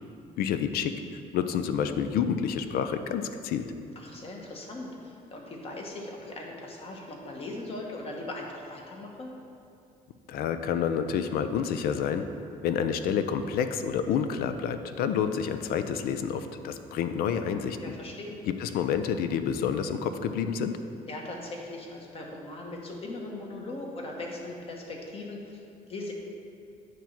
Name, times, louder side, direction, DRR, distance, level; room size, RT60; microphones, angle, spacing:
voice 1, 0.4-3.7 10.3-12.2 12.6-17.8 18.6-20.8, left 7 dB, 80° left, 9 dB, 0.4 m, -29 dB
voice 2, 3.9-9.3 17.8-18.4 21.1-26.1, left 2 dB, 40° left, 0 dB, 1.1 m, -39 dB
9.1 x 3.1 x 5.8 m, 2.5 s
cardioid pair, 130°, 15 cm